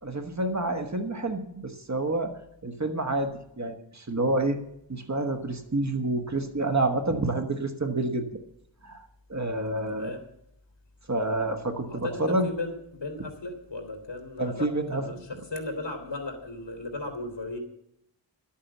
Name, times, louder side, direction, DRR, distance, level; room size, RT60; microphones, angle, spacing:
voice 1, 0.0-2.3 2.6-3.3 3.6-4.6 4.9-8.2 8.8-9.0 9.3-10.1 11.1-12.5 14.4-15.2, right 2 dB, 40° right, 6 dB, 1.4 m, -28 dB
voice 2, 9.9-10.2 11.9-17.6, left 2 dB, 70° left, 4 dB, 3.0 m, -36 dB
12.5 x 8.6 x 7.3 m, 0.75 s
wide cardioid pair, 85°, 45 cm